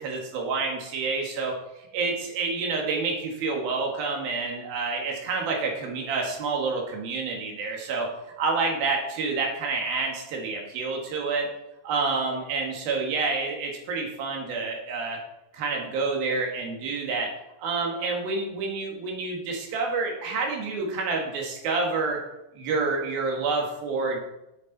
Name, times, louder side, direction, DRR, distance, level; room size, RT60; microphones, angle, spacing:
voice 1, 0.0-8.1 8.4-11.5 11.8-15.2 15.5-17.3 17.6-22.2 22.5-24.2, right 4 dB, 60° right, 1 dB, 3.1 m, -28 dB
13.0 x 6.8 x 4.1 m, 0.88 s
omnidirectional pair, 5.8 m